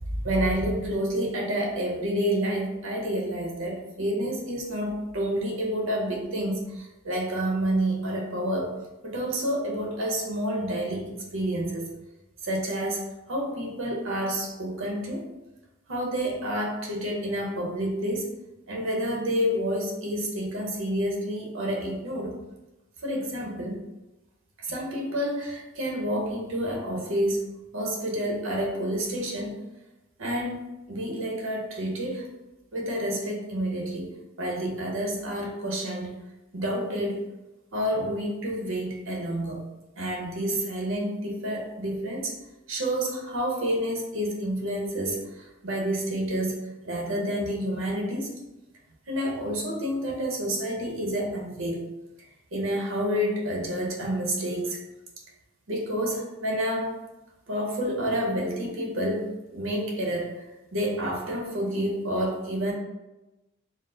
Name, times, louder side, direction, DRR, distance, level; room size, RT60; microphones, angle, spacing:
voice 1, 0.1-8.7 9.0-11.9 12.4-15.3 15.9-18.3 18.7-22.3 23.0-23.8 24.6-27.5 27.7-29.6 30.2-32.3 32.7-34.1 34.4-36.2 36.5-37.2 37.7-39.6 39.9-42.3 42.7-48.3 49.1-51.9 52.5-54.8 55.7-57.0 57.5-60.5 60.7-62.7, equal, 85° right, 0 dB, 0.9 m, -29 dB
4.4 x 2.1 x 3.8 m, 1.0 s
head